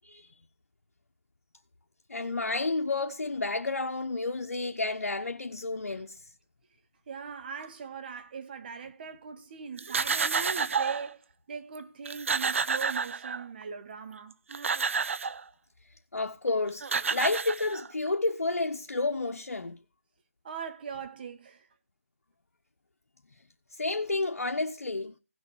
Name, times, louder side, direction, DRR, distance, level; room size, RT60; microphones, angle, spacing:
voice 1, 0.0-0.4 2.1-6.2 16.1-19.8 23.7-25.1, left 3 dB, 85° left, 1.0 m, -31 dB
voice 2, 7.1-11.2 11.5-14.4 20.4-21.6, right 6 dB, 35° right, 2.1 m, -40 dB
sound 1, 9.8-11.1 11.8-11.9 12.1-13.6 14.3-15.4 16.5-16.6 16.8-18.1, right 5 dB, 55° right, 0.7 m, -30 dB
16.0 x 6.7 x 4.7 m
figure-of-eight pair, 160°, 8 cm